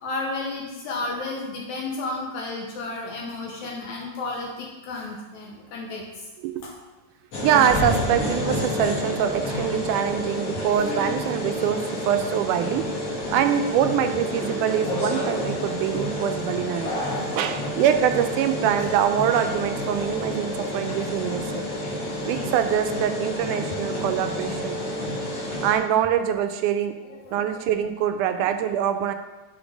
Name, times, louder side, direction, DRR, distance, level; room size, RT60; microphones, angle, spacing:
voice 1, 0.0-6.2 6.6-6.7 17.0-17.6 27.0-27.6, left 2 dB, 70° left, -2 dB, 2.1 m, -33 dB
sound 1, 7.3-25.7, left 1 dB, 55° left, 2.8 m, -29 dB
voice 2, 7.4-12.9 13.3-21.6 22.2-24.8 25.6-27.0 27.3-29.1, right 9 dB, 80° right, 8 dB, 2.0 m, -24 dB
10.5 x 3.8 x 5.0 m, 1.2 s
omnidirectional pair, 3.7 m